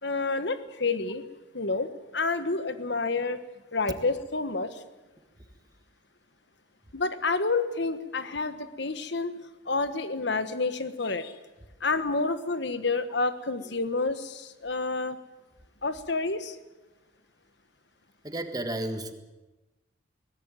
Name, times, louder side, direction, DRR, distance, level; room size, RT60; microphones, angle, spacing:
voice 1, 0.0-1.2 1.5-3.4 3.7-4.8 6.9-9.3 9.6-11.3 11.8-15.2 15.8-16.6, left 3 dB, 60° left, 11 dB, 1.4 m, -29 dB
voice 2, 18.2-19.1, right 1 dB, 20° right, 7 dB, 1.6 m, -32 dB
21.5 x 18.5 x 9.3 m, 1.1 s
head